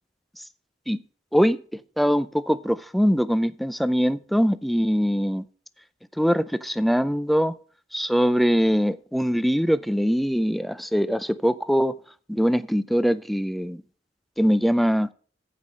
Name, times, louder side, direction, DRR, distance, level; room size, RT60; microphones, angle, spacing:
voice 1, 1.3-5.4 6.2-7.5 7.9-12.0 12.3-13.8 14.4-15.1, equal, ahead, 0.5 m, -22 dB
14.5 x 5.5 x 6.4 m
head